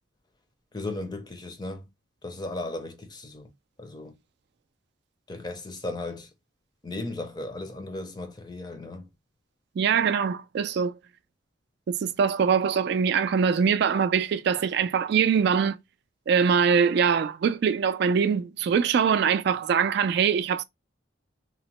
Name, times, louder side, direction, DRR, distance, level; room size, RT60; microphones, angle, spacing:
voice 1, 0.7-1.9 2.2-3.5 3.8-4.1 5.3-6.3 6.8-9.1, left 2 dB, 20° left, 0.5 m, -36 dB
voice 2, 9.8-11.0 11.9-15.8 16.3-20.6, right 6 dB, 60° right, 0.3 m, -23 dB
3.0 x 2.0 x 2.9 m
head